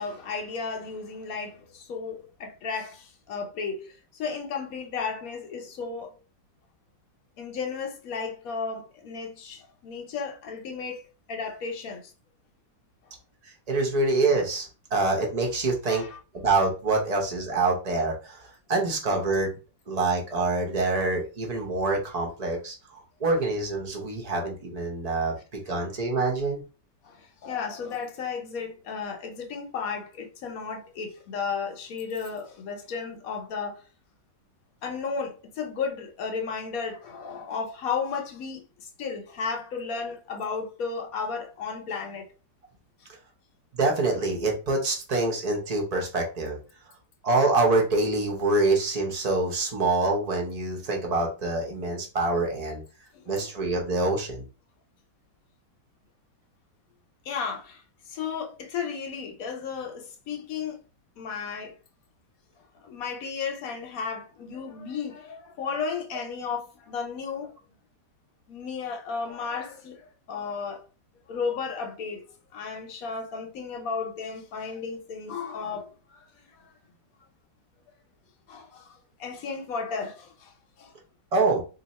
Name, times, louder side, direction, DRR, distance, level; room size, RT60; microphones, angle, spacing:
voice 1, 0.0-6.1 7.4-11.0 11.3-12.1 15.9-16.2 25.7-25.8 27.0-33.8 34.8-42.3 43.0-43.1 53.1-53.5 57.2-57.8 58.1-60.8 61.2-61.7 62.8-67.5 68.5-70.8 71.3-72.2 72.5-76.7 78.5-80.5 80.8-80.9, left 5 dB, 60° left, 1.0 m, -34 dB
voice 2, 13.4-16.1 16.3-19.6 19.9-25.4 25.7-26.6 43.7-46.6 47.2-52.8 53.3-54.4 81.3-81.6, right 3 dB, 60° right, 0.4 m, -26 dB
2.7 x 2.7 x 4.1 m
omnidirectional pair, 2.0 m